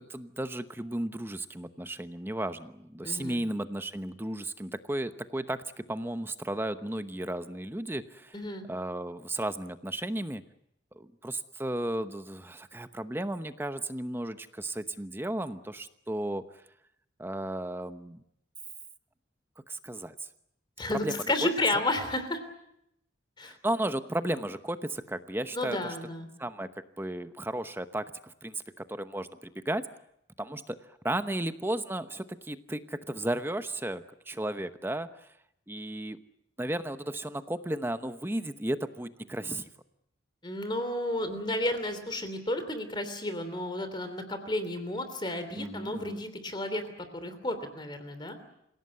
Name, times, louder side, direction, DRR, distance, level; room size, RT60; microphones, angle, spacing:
voice 1, 0.0-8.3 8.7-10.4 10.9-16.4 17.2-18.2 19.7-20.1 20.9-21.2 23.4-25.9 26.4-26.7 27.0-29.9 30.4-30.8 31.0-35.3 35.7-36.2 36.6-39.7 45.5-46.2, right 1 dB, 10° right, 10 dB, 0.9 m, -34 dB
voice 2, 3.0-3.4 8.3-8.6 20.8-22.4 23.4-23.6 25.5-26.3 40.4-46.8 47.1-48.4, left 1 dB, 25° left, 9 dB, 3.0 m, -32 dB
27.0 x 17.0 x 9.6 m, 0.79 s
head